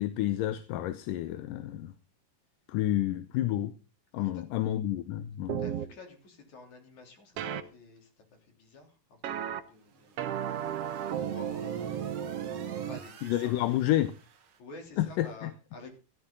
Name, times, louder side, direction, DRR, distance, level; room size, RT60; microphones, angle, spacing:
voice 1, 0.0-1.9 2.7-3.7 4.1-5.6 13.2-14.1 15.0-15.5, left 13 dB, 75° left, 2.2 m, -30 dB
sound 1, 5.5-5.8 7.4-7.6 9.2-9.6 10.2-13.0, right 9 dB, 80° right, 1.3 m, -33 dB
voice 2, 5.6-10.2 10.6-10.7 11.1-13.8 14.6-15.9, left 3 dB, 55° left, 4.6 m, -51 dB
sound 2, 9.6-14.6, right 7 dB, 55° right, 1.5 m, -53 dB
14.5 x 13.0 x 3.8 m
omnidirectional pair, 4.2 m